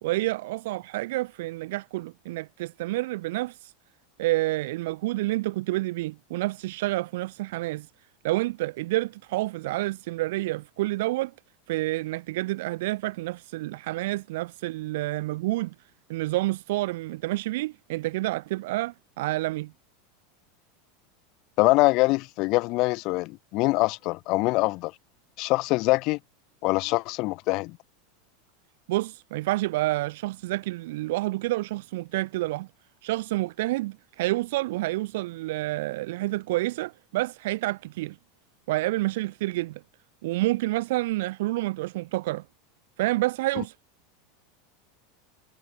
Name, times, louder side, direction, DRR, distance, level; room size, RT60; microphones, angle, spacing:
voice 1, 0.0-3.7 4.2-7.9 8.2-11.3 11.7-15.7 16.1-19.7 28.9-32.7 33.0-38.2 38.7-39.8 40.2-42.5 43.0-43.7, right 18 dB, 70° right, 3.4 m, -29 dB
voice 2, 21.6-24.9 25.4-26.2 26.6-27.8, left 23 dB, 50° left, 1.6 m, -24 dB
supercardioid pair, 135°, 0 cm